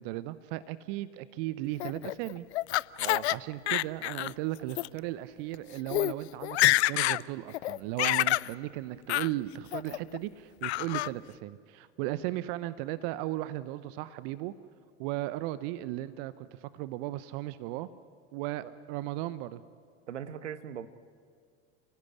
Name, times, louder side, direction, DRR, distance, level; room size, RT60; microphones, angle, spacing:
voice 1, 0.0-2.5 3.3-14.5 15.0-17.9 18.3-19.6, right 15 dB, 50° right, 16 dB, 0.9 m, -36 dB
Laughter, 1.8-3.4 3.7-4.3 4.7-4.9 5.5-5.6 5.9-6.1 6.4-7.2 7.5-8.5 9.1-9.3 9.7-10.2 10.6-11.1, left 17 dB, 65° left, 0.6 m, -27 dB
voice 2, 3.0-3.3 20.1-20.9, right 9 dB, 75° right, 14 dB, 1.3 m, -39 dB
29.5 x 16.5 x 9.8 m, 2.1 s
hypercardioid pair, 85°, 35 cm